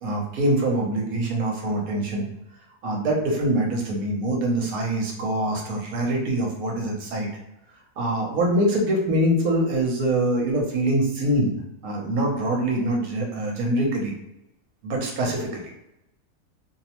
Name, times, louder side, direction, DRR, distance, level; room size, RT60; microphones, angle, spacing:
voice 1, 0.0-2.3 2.8-7.3 8.0-14.2 14.8-15.7, right 1 dB, 70° right, 0 dB, 1.2 m, -24 dB
2.9 x 2.1 x 2.9 m, 0.87 s
omnidirectional pair, 1.6 m